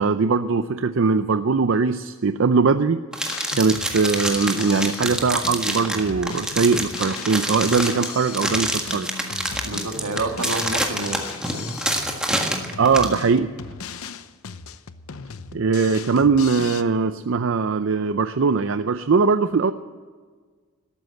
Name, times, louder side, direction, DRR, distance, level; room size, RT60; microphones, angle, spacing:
voice 1, 0.0-3.0 3.6-9.1 12.8-13.5 15.5-19.7, right 4 dB, 60° right, 10 dB, 0.5 m, -20 dB
sound 1, 3.1-13.2, right 1 dB, 5° right, 1.6 m, -27 dB
Drum kit, 3.3-16.8, left 6 dB, 75° left, 0.7 m, -37 dB
voice 2, 9.6-11.7, right 2 dB, 85° right, 5 dB, 1.9 m, -29 dB
13.0 x 13.0 x 7.7 m, 1.5 s
head